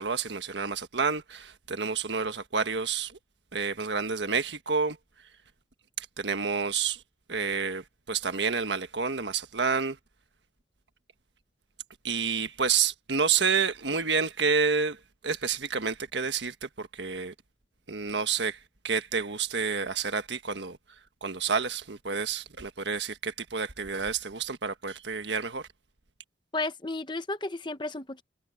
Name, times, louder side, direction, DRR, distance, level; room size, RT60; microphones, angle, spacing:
voice 1, 0.0-3.1 3.5-5.0 6.0-7.0 7.3-10.0 12.0-15.0 15.2-17.3 17.9-18.6 18.8-20.8 21.2-25.7, right 5 dB, 80° right, 1.4 m, -29 dB
voice 2, 26.5-28.2, left 2 dB, 25° left, 1.0 m, -33 dB
head